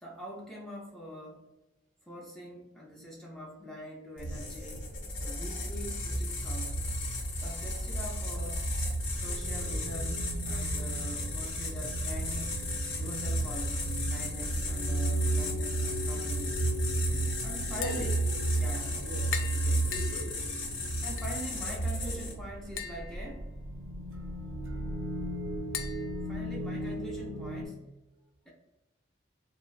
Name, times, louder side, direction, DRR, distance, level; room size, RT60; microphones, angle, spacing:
voice 1, 0.0-1.4 2.1-4.9 5.2-7.0 7.4-8.7 9.1-12.5 13.0-16.7 17.4-18.1 18.6-19.0 21.0-23.5 26.3-27.8, equal, ahead, -4 dB, 0.4 m, -43 dB
sound 1, 4.2-22.5, right 1 dB, 65° left, 0.7 m, -32 dB
sound 2, 9.2-27.7, equal, 90° right, 0.4 m, -40 dB
Tap, 17.6-27.1, left 7 dB, 85° left, 0.4 m, -44 dB
voice 2, 17.7-18.1 19.0-20.4 26.8-26.9, equal, 50° right, 0 dB, 0.6 m, -41 dB
3.5 x 2.1 x 2.3 m, 1.0 s
head